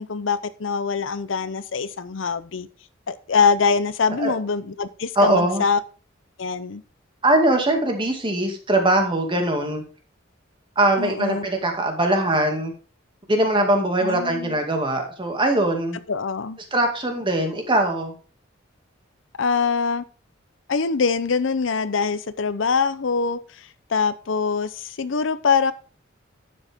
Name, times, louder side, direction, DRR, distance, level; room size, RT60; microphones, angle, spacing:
voice 1, 0.0-2.7 3.1-5.8 6.4-6.8 11.0-11.5 14.0-14.6 16.1-16.6 19.4-20.0 20.7-25.7, left 5 dB, 70° left, 0.6 m, -23 dB
voice 2, 5.2-5.6 7.2-9.8 10.8-12.7 13.3-16.0 16.7-18.1, right 1 dB, 25° right, 2.2 m, -21 dB
11.5 x 7.9 x 3.6 m
head